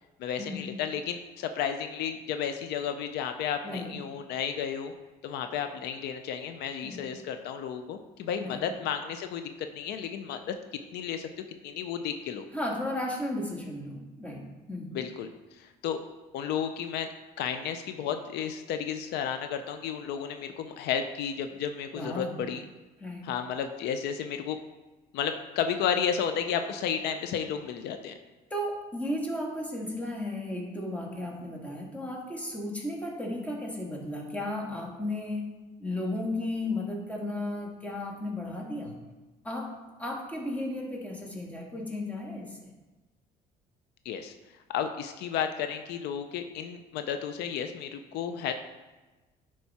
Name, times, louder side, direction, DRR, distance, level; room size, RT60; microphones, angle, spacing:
voice 1, 0.2-4.9 5.2-10.4 10.9-12.4 14.9-16.0 16.3-17.1 17.4-22.6 23.2-24.6 25.1-28.1 44.0-44.3 44.7-48.5, left 8 dB, 85° left, 8 dB, 0.6 m, -32 dB
voice 2, 12.5-14.9 21.9-22.4 23.0-23.3 28.5-35.5 35.8-38.9 39.4-39.7 40.0-42.7, left 1 dB, 10° left, -2 dB, 1.8 m, -34 dB
10.5 x 4.7 x 4.2 m, 1.2 s
cardioid pair, 110°, 17 cm